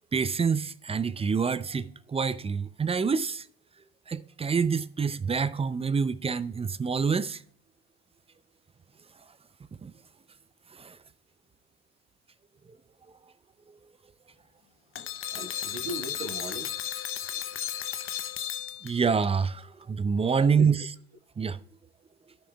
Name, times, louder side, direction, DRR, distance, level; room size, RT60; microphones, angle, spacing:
voice 1, 0.1-3.5 4.1-7.4 9.8-9.9 10.8-11.0 18.8-20.9 21.4-21.6, right 5 dB, 15° right, 0.5 m, -27 dB
sound 1, 15.0-19.3, left 10 dB, 40° left, 0.7 m, -34 dB
voice 2, 15.3-16.8 20.2-20.7, right 3 dB, 80° right, 2.2 m, -38 dB
16.5 x 6.2 x 2.3 m
hypercardioid pair, 70°, 35 cm